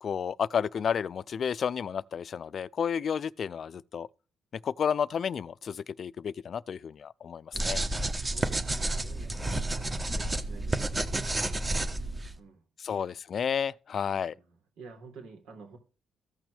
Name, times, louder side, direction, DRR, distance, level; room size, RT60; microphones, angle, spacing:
voice 1, 0.0-4.1 4.6-7.8 12.8-14.3, left 7 dB, 55° left, 0.4 m, -31 dB
sound 1, 7.5-12.3, right 2 dB, 20° right, 1.3 m, -30 dB
voice 2, 8.2-11.5 12.4-13.1 14.1-15.8, right 4 dB, 85° right, 3.7 m, -51 dB
14.5 x 6.1 x 3.4 m
cardioid pair, 90°, 0 cm